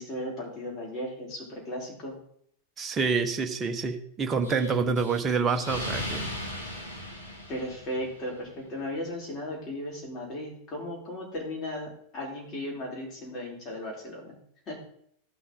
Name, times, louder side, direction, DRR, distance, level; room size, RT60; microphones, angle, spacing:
voice 1, 0.0-2.2 7.5-14.4 14.7-14.8, left 1 dB, 30° left, -2 dB, 4.2 m, -36 dB
voice 2, 2.8-6.3, right 5 dB, 20° right, 6 dB, 1.0 m, -27 dB
Explosion, 4.4-8.3, left 1 dB, 85° left, 2.2 m, -37 dB
15.5 x 6.1 x 3.8 m, 0.66 s
figure-of-eight pair, 90°, 0 cm